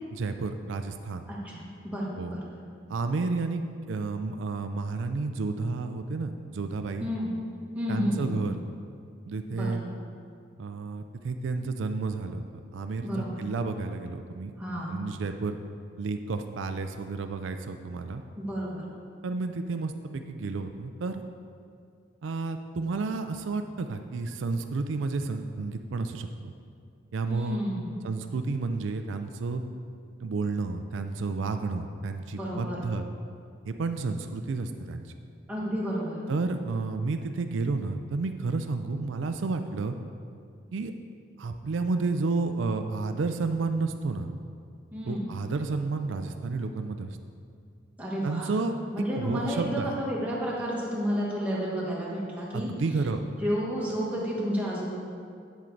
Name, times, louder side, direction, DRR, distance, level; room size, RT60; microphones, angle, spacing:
voice 1, 0.1-1.3 2.2-2.3 2.9-7.1 7.9-8.5 9.2-9.8 10.6-12.5 12.7-14.5 14.9-15.6 16.0-18.2 19.2-21.2 22.2-26.5 27.1-27.7 28.0-29.6 30.2-33.0 33.6-35.1 36.3-39.9 40.7-40.9 41.4-44.3 45.0-47.2 48.2-48.7 49.1-49.9 52.5-53.2, right 3 dB, 80° right, 7 dB, 0.4 m, -31 dB
voice 2, 1.3-2.4 7.0-7.3 7.7-8.4 9.5-9.7 13.0-13.4 14.6-15.0 18.4-18.8 27.2-28.0 32.3-32.8 35.5-36.2 44.9-45.3 48.0-48.5 48.9-52.7 53.2-54.9, equal, 5° right, -5 dB, 1.4 m, -31 dB
8.3 x 7.5 x 3.9 m, 2.3 s
head